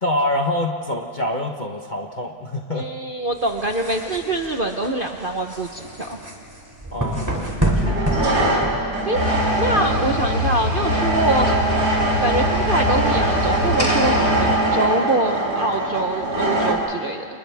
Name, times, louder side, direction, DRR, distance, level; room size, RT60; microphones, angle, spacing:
voice 1, 0.0-2.9 6.9-8.6, left 1 dB, 35° left, 2 dB, 0.9 m, -26 dB
voice 2, 2.7-6.2 7.4-7.5 9.0-9.3 9.6-11.9 12.2-17.2, right 2 dB, 40° right, 3 dB, 0.8 m, -24 dB
sound 1, 3.4-9.3, right 1 dB, 10° right, 2.7 m, -27 dB
sound 2, 5.8-6.0 7.8-16.7, right 2 dB, 55° right, 3.1 m, -22 dB
sound 3, 9.1-14.6, left 2 dB, 75° left, 7.4 m, -25 dB
30.0 x 28.5 x 3.5 m, 2.2 s
omnidirectional pair, 1.9 m